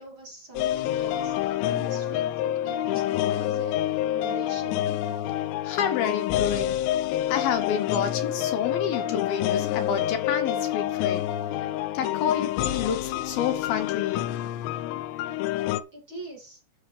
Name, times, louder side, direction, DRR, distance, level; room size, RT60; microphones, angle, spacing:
voice 1, 0.0-4.9 15.9-16.6, right 3 dB, 35° right, 2.6 m, -43 dB
sound 1, 0.6-15.8, left 12 dB, 90° left, 2.9 m, -27 dB
voice 2, 5.6-6.8 7.3-11.3 11.9-14.2, left 8 dB, 70° left, 2.6 m, -29 dB
12.5 x 7.4 x 3.3 m
omnidirectional pair, 4.8 m